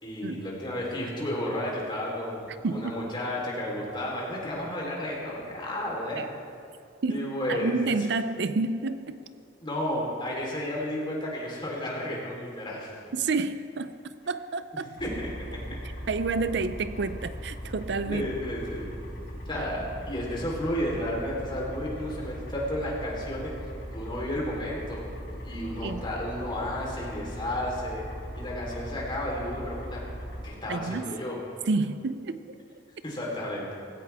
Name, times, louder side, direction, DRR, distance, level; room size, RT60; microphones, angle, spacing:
voice 1, 0.0-6.3 7.1-7.7 9.6-12.9 15.0-15.8 18.1-18.9 19.5-23.5 23.9-25.0 25.4-28.0 28.4-30.0 30.4-31.4 33.0-33.7, left 1 dB, 25° left, -4 dB, 3.8 m, -32 dB
voice 2, 7.0-9.2 13.1-14.9 16.1-18.3 19.5-19.6 25.8-26.0 30.7-31.1 31.7-32.6, right 3 dB, 65° right, 12 dB, 0.5 m, -29 dB
sound 1, 15.0-30.5, equal, 55° left, 4.5 m, -39 dB
19.0 x 16.5 x 3.6 m, 2.5 s
head